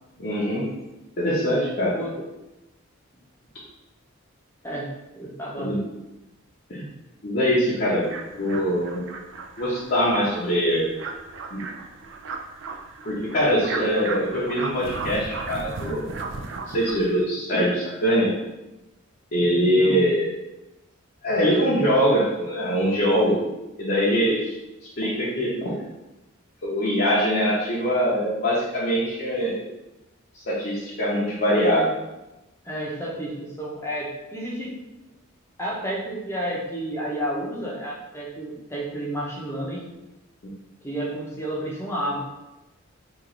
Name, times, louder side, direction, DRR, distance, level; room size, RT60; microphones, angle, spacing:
voice 1, 0.2-0.7 1.2-2.0 5.5-5.8 6.7-6.9 7.2-8.1 8.3-9.1 9.6-10.9 11.5-11.6 13.0-16.1 16.7-18.3 19.3-20.3 21.2-23.4 23.8-24.5 25.0-25.8 26.6-29.7 30.5-32.0, equal, 45° left, -8 dB, 0.7 m, -23 dB
voice 2, 4.6-5.7 19.6-20.1 32.6-34.7 35.6-39.9 40.8-42.2, right 1 dB, 10° left, -4 dB, 0.7 m, -31 dB
sound 1, 8.0-17.2, right 4 dB, 55° right, 0.3 m, -36 dB
3.0 x 2.5 x 3.8 m, 0.97 s
head